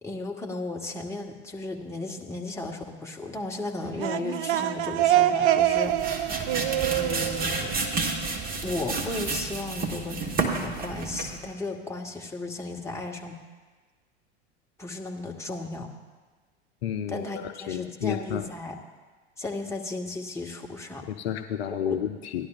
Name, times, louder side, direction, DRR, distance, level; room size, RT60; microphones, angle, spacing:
voice 1, 0.0-6.5 7.0-7.7 8.6-13.4 14.8-15.9 17.1-18.8 19.4-21.0 21.8-22.0, left 2 dB, 10° left, 0 dB, 1.4 m, -35 dB
sound 1, 3.8-8.5, right 12 dB, 50° right, 0.5 m, -25 dB
sound 2, 5.6-11.4, right 3 dB, 25° right, 1.4 m, -30 dB
voice 2, 16.8-18.5 21.1-22.5, left 9 dB, 60° left, 7 dB, 0.6 m, -31 dB
17.0 x 11.5 x 2.5 m, 1.4 s
figure-of-eight pair, 80°, 34 cm